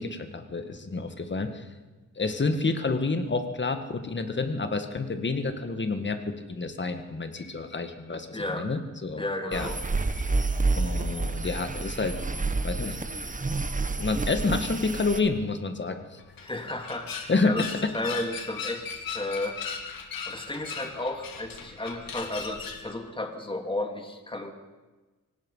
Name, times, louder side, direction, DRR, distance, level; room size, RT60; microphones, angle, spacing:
voice 1, 0.0-1.7 2.2-9.2 9.5-9.7 10.7-12.2 12.6-13.0 14.0-16.2 17.3-17.9, left 3 dB, 35° left, 7 dB, 2.0 m, -29 dB
sound 1, 7.3-8.2 8.4-8.5 8.8-8.9 9.6-11.6 13.2-14.4, left 2 dB, 70° left, 7.0 m, -54 dB
voice 2, 8.3-8.7 9.2-9.8 16.4-17.6 17.9-18.9 19.1-19.6 20.3-24.5, left 2 dB, 15° left, 4 dB, 2.6 m, -33 dB
sound 2, 9.5-15.2, right 3 dB, 25° right, 1.3 m, -29 dB
sound 3, 16.2-22.9, left 6 dB, 90° left, 2.7 m, -38 dB
25.0 x 18.5 x 5.7 m, 1.2 s
wide cardioid pair, 110°, 33 cm